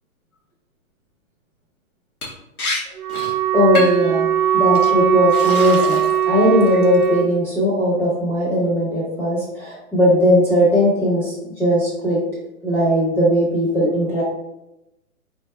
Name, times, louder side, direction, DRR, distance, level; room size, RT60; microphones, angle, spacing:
Liquid, 2.2-2.3 2.6-2.8 3.1-3.3 3.8-4.1 4.7-4.9 5.3-6.2 6.6-7.0, left 2 dB, 80° left, 1.5 m, -28 dB
Wind instrument woodwind instrument, 3.0-7.3, right 10 dB, 90° right, 0.7 m, -19 dB
voice 1, 3.5-4.3 4.5-6.0 6.3-11.3 11.6-12.2 12.6-14.2, equal, 5° left, -7 dB, 1.1 m, -18 dB
4.6 x 4.1 x 2.3 m, 0.90 s
hypercardioid pair, 155°, 43 cm